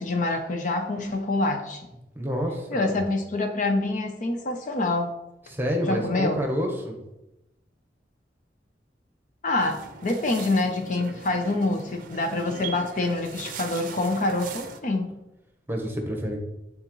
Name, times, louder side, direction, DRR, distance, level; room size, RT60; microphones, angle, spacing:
voice 1, 0.0-1.8 2.7-5.1 5.9-6.4 9.4-15.1, left 2 dB, 45° left, 4 dB, 0.6 m, -26 dB
voice 2, 2.1-3.1 5.5-7.0 15.7-16.4, equal, 10° right, 1 dB, 1.0 m, -28 dB
sound 1, 9.6-14.8, right 5 dB, 50° right, 0.6 m, -40 dB
9.4 x 3.8 x 3.1 m, 0.93 s
head